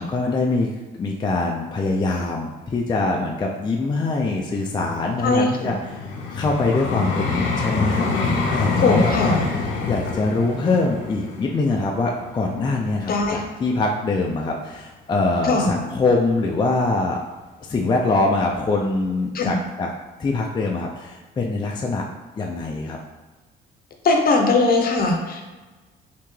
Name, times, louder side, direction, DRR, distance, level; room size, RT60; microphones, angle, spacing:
voice 1, 0.0-6.0 6.3-9.4 9.9-17.2 17.7-19.9 20.2-22.0 22.4-23.0, left 3 dB, 25° left, 0 dB, 0.4 m, -23 dB
Vehicle, 4.6-13.6 14.3-14.4, left 3 dB, 85° left, 0.6 m, -27 dB
voice 2, 5.2-5.7 8.8-9.4 13.1-13.4 15.4-15.7 19.3-19.6 24.0-25.4, left 3 dB, 50° left, 3 dB, 0.7 m, -19 dB
3.4 x 2.8 x 3.1 m, 1.3 s
cardioid pair, 90°, 20 cm